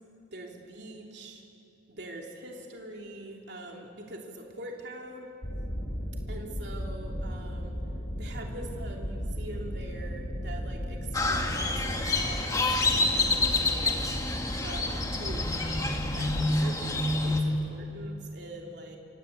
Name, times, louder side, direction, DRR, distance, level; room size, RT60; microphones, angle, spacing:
voice 1, 0.3-1.4 1.9-5.3 6.3-7.8 8.2-13.9 14.3-19.0, right 1 dB, 65° right, 0 dB, 3.2 m, -43 dB
sound 1, 5.4-16.5, equal, 50° left, 3.9 m, -36 dB
Crow, 11.1-17.4, left 2 dB, 20° left, 2.0 m, -28 dB
26.5 x 25.5 x 8.4 m, 2.7 s
head